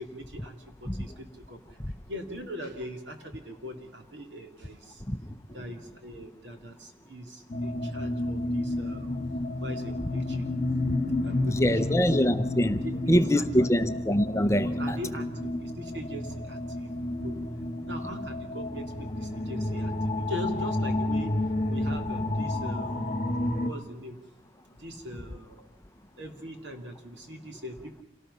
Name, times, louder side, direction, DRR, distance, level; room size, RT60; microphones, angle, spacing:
voice 1, 0.0-1.8 2.1-5.0 5.5-9.2 9.6-10.6 11.0-12.2 12.8-13.8 14.6-17.5 17.8-23.0 23.6-24.2 24.7-25.7 26.2-28.0, equal, 75° right, 3.0 m, -41 dB
sound 1, 7.5-23.7, left 1 dB, 40° left, 1.7 m, -31 dB
voice 2, 11.5-15.0, equal, 15° left, 0.7 m, -24 dB
27.5 x 18.0 x 5.7 m
head